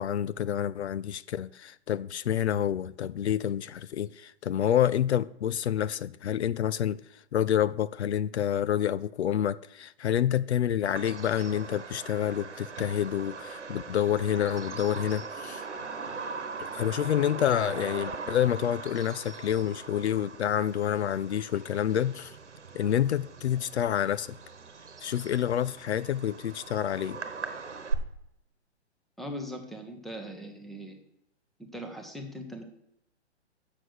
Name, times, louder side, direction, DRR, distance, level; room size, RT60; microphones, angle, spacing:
voice 1, 0.0-15.6 16.6-22.4 22.7-24.4 25.0-27.2, left 10 dB, 70° left, 0.5 m, -28 dB
Bird vocalization bird call bird song, 10.9-27.9, right 5 dB, 85° right, 1.2 m, -40 dB
voice 2, 29.2-31.0 31.7-32.6, equal, ahead, 0.9 m, -40 dB
7.6 x 6.5 x 6.3 m
figure-of-eight pair, 130°, 34 cm